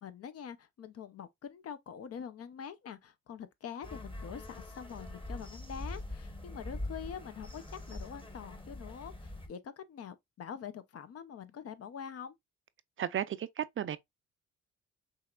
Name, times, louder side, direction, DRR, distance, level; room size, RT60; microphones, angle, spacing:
voice 1, 0.0-12.4, left 8 dB, 50° left, 0.7 m, -45 dB
sound 1, 3.8-9.5, left 1 dB, 15° left, 1.1 m, -43 dB
voice 2, 13.0-14.0, right 10 dB, 45° right, 0.4 m, -34 dB
5.6 x 3.0 x 2.3 m
cardioid pair, 90°, 30 cm